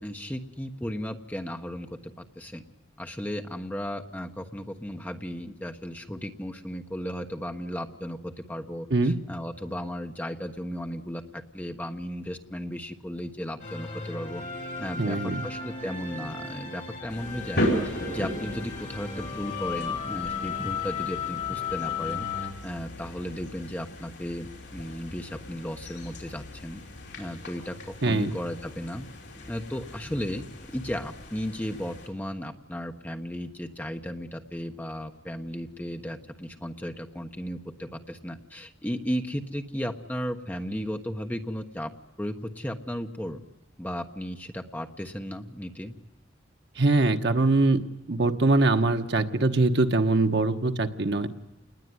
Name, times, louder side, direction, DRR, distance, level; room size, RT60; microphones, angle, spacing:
voice 1, 0.0-2.6 3.0-14.4 14.8-17.7 18.0-22.3 22.6-26.8 27.2-29.1 29.5-30.5 30.7-41.9 42.2-43.4 43.8-46.0, equal, 10° left, 5 dB, 1.3 m, -35 dB
sound 1, 13.6-22.5, left 6 dB, 40° left, 3.8 m, -35 dB
voice 2, 15.0-15.4 28.0-28.3 46.8-51.3, right 2 dB, 60° right, 7 dB, 1.2 m, -23 dB
sound 2, 17.1-32.1, equal, 60° left, 5.3 m, -37 dB
28.0 x 20.0 x 9.6 m, 1.1 s
head